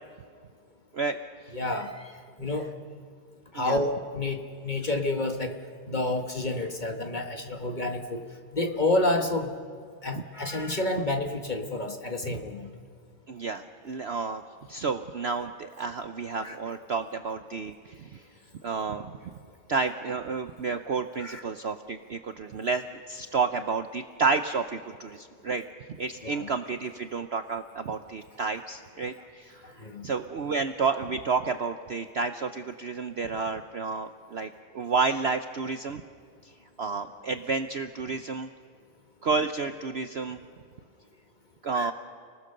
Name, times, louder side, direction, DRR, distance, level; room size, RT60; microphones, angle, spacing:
voice 1, 1.5-2.1 2.4-2.7 3.5-5.6 5.9-8.2 8.5-9.5 10.0-12.7 16.4-16.6 21.2-21.4 26.2-26.5 29.6-30.1 41.7-41.9, left 2 dB, 30° left, 5 dB, 1.3 m, -29 dB
voice 2, 13.3-14.4 14.7-18.2 18.6-19.1 19.7-25.6 26.0-36.0 36.4-36.5 36.8-38.5 39.2-40.4 41.6-41.9, right 4 dB, 55° right, 8 dB, 0.8 m, -30 dB
30.0 x 19.0 x 6.7 m, 2.1 s
omnidirectional pair, 1.7 m